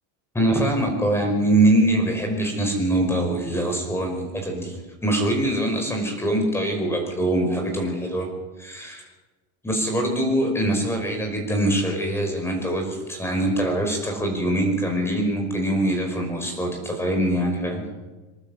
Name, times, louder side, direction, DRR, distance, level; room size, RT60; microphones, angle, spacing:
voice 1, 0.3-4.8 5.0-8.3 8.6-9.0 9.6-17.8, right 1 dB, 5° left, 2 dB, 5.5 m, -23 dB
27.0 x 12.0 x 8.3 m, 1.2 s
cardioid pair, 150°, 36 cm